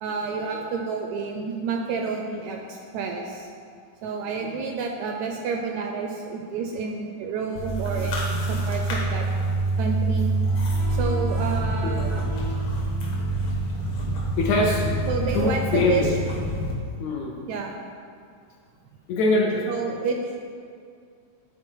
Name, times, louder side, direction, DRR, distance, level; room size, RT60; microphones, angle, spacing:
voice 1, 0.0-3.5 4.0-9.2 9.8-10.3 10.9-12.2 15.1-16.1 17.5-17.8 19.7-20.2, right 5 dB, 80° right, 2 dB, 1.7 m, -29 dB
sound 1, 7.6-16.7, right 2 dB, 50° left, 1.7 m, -26 dB
voice 2, 10.5-13.5 14.0-14.1 14.4-15.1 15.3-16.1 16.5-16.6 17.0-17.4 19.1-19.7, left 3 dB, 75° left, -1 dB, 1.8 m, -27 dB
10.5 x 4.4 x 4.6 m, 2.3 s
omnidirectional pair, 3.8 m